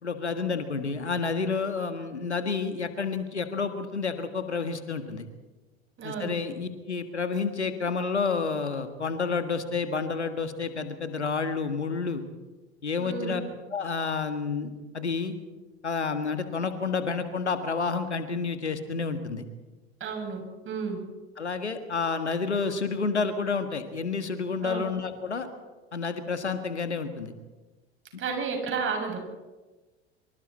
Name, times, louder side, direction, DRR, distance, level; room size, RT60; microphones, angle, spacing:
voice 1, 0.0-5.3 6.0-12.2 12.8-13.4 13.7-15.4 15.8-19.5 21.4-25.5 25.9-27.3, left 4 dB, 90° left, 8 dB, 1.8 m, -30 dB
voice 2, 6.0-6.3 13.0-13.4 20.0-21.0 24.6-24.9 28.2-29.2, right 5 dB, 40° right, 2 dB, 7.1 m, -32 dB
26.0 x 25.0 x 4.4 m, 1.2 s
figure-of-eight pair, 75°, 33 cm